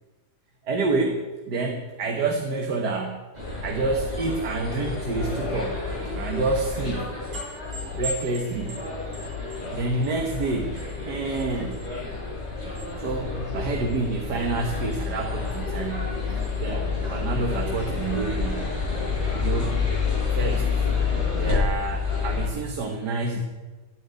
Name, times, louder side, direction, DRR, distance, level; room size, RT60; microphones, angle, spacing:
voice 1, 0.7-3.3 3.6-5.9 6.2-7.1 8.0-8.9 9.7-11.9 12.9-16.2 16.6-18.7 19.3-19.8 20.3-20.8 21.4-23.4, right 3 dB, 80° right, 2 dB, 1.9 m, -28 dB
sound 1, 3.3-22.5, left 4 dB, 25° right, 6.4 m, -29 dB
13.5 x 9.1 x 9.4 m, 1.3 s
omnidirectional pair, 1.7 m